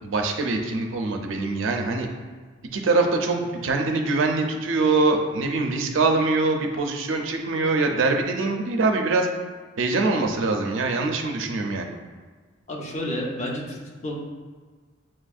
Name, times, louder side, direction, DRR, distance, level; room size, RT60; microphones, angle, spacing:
voice 1, 0.0-2.1 2.7-9.3 9.8-11.9, right 3 dB, 75° right, 3 dB, 0.5 m, -23 dB
voice 2, 12.7-14.1, left 1 dB, 35° left, -2 dB, 0.7 m, -30 dB
7.4 x 2.5 x 2.4 m, 1.5 s
head